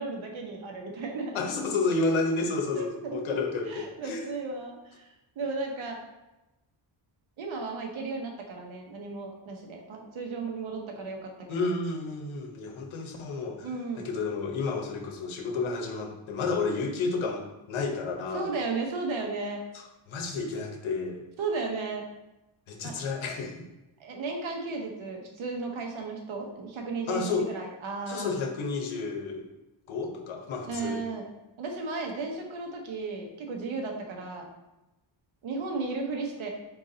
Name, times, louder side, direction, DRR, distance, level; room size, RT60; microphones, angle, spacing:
voice 1, 0.0-1.4 2.8-3.4 3.7-6.0 7.4-11.6 13.6-14.0 18.3-19.6 21.4-22.1 22.8-22.9 24.0-28.3 30.7-31.3 31.6-34.5 35.4-36.5, right 3 dB, 80° right, 2 dB, 1.0 m, -34 dB
voice 2, 1.3-4.3 11.5-13.7 14.0-18.5 19.7-21.2 22.7-23.7 27.1-27.5 28.1-29.5 29.9-31.0, left 3 dB, 85° left, 3 dB, 0.9 m, -31 dB
4.5 x 3.8 x 2.7 m, 0.97 s
wide cardioid pair, 155°, 47 cm